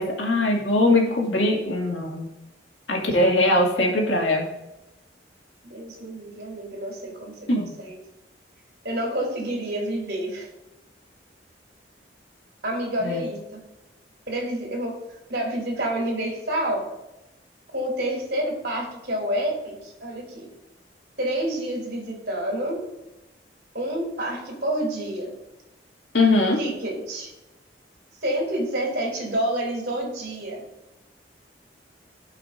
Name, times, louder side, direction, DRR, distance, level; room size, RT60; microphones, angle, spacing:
voice 1, 0.0-2.3 2.9-4.5 7.5-7.7 13.0-13.2 26.1-26.6, left 2 dB, 85° left, -1 dB, 2.2 m, -21 dB
voice 2, 5.6-8.0 8.8-10.5 12.6-13.6 14.3-15.0 15.3-16.8 17.7-20.5 21.2-22.8 23.7-25.3 26.6-27.3 28.2-30.6, right 1 dB, 60° right, -1 dB, 3.1 m, -28 dB
16.5 x 5.6 x 2.6 m, 0.99 s
head